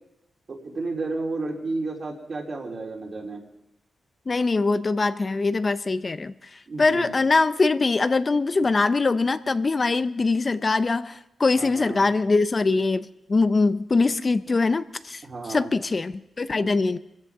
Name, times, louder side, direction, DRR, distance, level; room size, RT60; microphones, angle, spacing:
voice 1, 0.5-3.4 6.7-7.1 11.6-12.1 15.2-15.7, right 3 dB, 50° right, 3.4 m, -32 dB
voice 2, 4.3-15.2 15.5-17.0, left 3 dB, 40° left, 0.5 m, -23 dB
24.5 x 15.0 x 3.6 m
cardioid pair, 80°, 0 cm